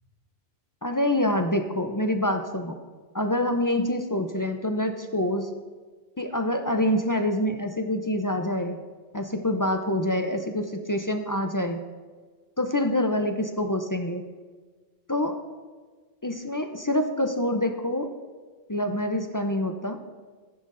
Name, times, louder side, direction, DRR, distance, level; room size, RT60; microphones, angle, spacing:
voice 1, 0.8-2.8 3.1-5.5 6.2-8.8 9.1-11.8 12.6-14.2 15.1-15.4 16.2-18.1 18.7-20.0, left 1 dB, 30° left, 5 dB, 0.3 m, -26 dB
14.0 x 10.5 x 2.6 m, 1.4 s
omnidirectional pair, 1.1 m